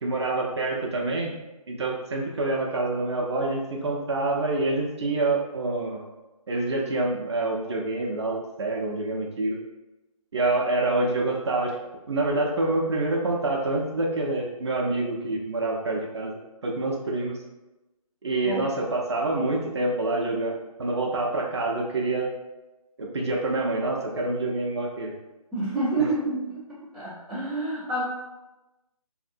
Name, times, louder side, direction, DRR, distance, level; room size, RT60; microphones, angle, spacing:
voice 1, 0.0-1.3 1.7-6.1 6.5-9.6 10.3-11.8 12.1-16.4 16.6-17.4 18.2-20.5 20.8-22.3 23.0-25.1, right 2 dB, 50° right, -1 dB, 0.5 m, -26 dB
voice 2, 25.5-26.5 26.9-28.0, right 2 dB, ahead, -20 dB, 0.5 m, -28 dB
2.7 x 2.5 x 2.5 m, 1.0 s
figure-of-eight pair, 160°, 19 cm